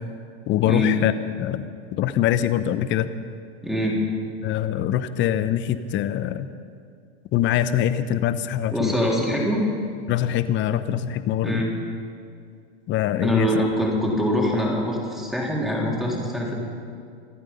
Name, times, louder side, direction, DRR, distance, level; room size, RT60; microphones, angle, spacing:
voice 1, 0.5-1.1 1.4-1.7 1.9-3.1 4.4-6.5 7.3-9.0 10.1-11.6 12.9-13.5, left 11 dB, 35° left, 13 dB, 0.8 m, -23 dB
voice 2, 3.6-4.0 8.7-9.6 11.4-11.7 13.2-16.5, equal, ahead, -3 dB, 3.4 m, -24 dB
26.0 x 8.9 x 5.5 m, 2.3 s
hypercardioid pair, 120°, 33 cm